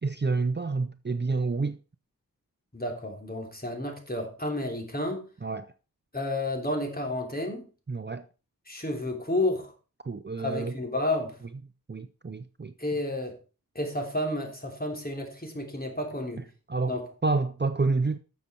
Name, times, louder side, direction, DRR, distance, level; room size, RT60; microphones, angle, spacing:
voice 1, 0.0-1.8 5.4-5.7 7.9-8.2 10.0-10.7 11.9-12.7 16.7-17.0 17.2-18.2, right 3 dB, 30° right, 0.6 m, -28 dB
voice 2, 2.7-5.2 6.1-7.6 8.7-9.7 10.4-11.4 12.8-13.4 13.7-16.4 16.9-17.1, left 1 dB, 25° left, 3.3 m, -31 dB
12.5 x 6.8 x 4.4 m
wide cardioid pair, 50°, 35 cm